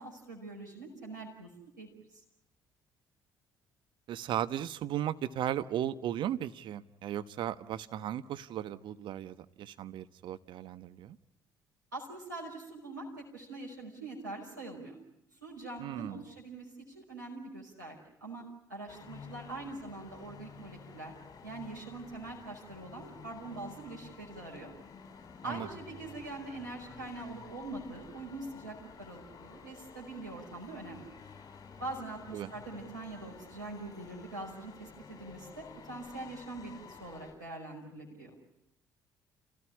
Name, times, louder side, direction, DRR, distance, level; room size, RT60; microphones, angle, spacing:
voice 1, 0.0-1.5 1.8-2.2 11.9-13.1 13.3-15.0 15.4-18.4 18.7-21.1 21.4-24.7 25.4-31.1 31.8-38.3, right 2 dB, 85° right, -3 dB, 5.3 m, -43 dB
voice 2, 4.1-11.2 15.8-16.2 25.5-25.7 32.3-32.5, right 11 dB, 55° right, 12 dB, 1.1 m, -36 dB
sound 1, 18.9-37.3, left 5 dB, 40° left, 6.0 m, -51 dB
29.5 x 17.0 x 9.9 m, 0.81 s
figure-of-eight pair, 50°, 10 cm